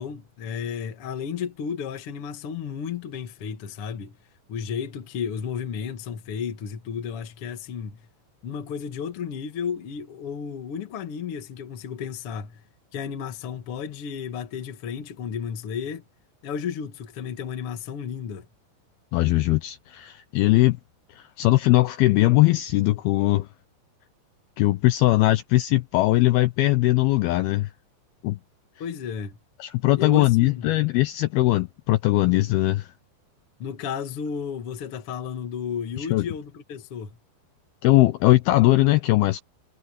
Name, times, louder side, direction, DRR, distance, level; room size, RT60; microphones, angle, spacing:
voice 1, 0.0-4.2 4.5-8.0 8.4-12.6 12.9-16.0 16.4-18.5 28.8-29.4 30.0-30.7 33.6-37.2, left 7 dB, 55° left, 1.6 m, -33 dB
voice 2, 19.1-20.8 21.2-23.5 24.6-27.7 28.2-28.4 29.6-32.9 36.0-36.3 37.8-39.4, left 18 dB, 85° left, 2.2 m, -20 dB
omnidirectional pair, 5.3 m